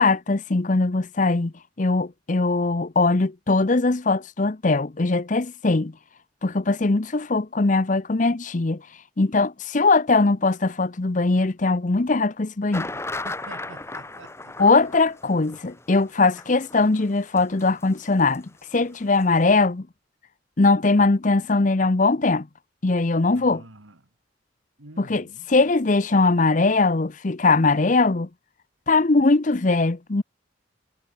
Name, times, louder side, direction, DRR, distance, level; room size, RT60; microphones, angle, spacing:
voice 1, 0.0-1.5 1.8-5.9 6.4-8.8 9.2-12.9 14.6-19.9 20.6-22.5 22.8-23.6 25.0-28.3 28.9-30.2, left 3 dB, 40° left, 0.7 m, -21 dB
sound 1, 12.7-18.4 18.6-18.7 19.1-19.2, left 2 dB, 15° left, 1.7 m, -36 dB
voice 2, 12.9-15.1 23.3-24.1 24.8-25.7, right 2 dB, 85° right, 2.4 m, -47 dB
head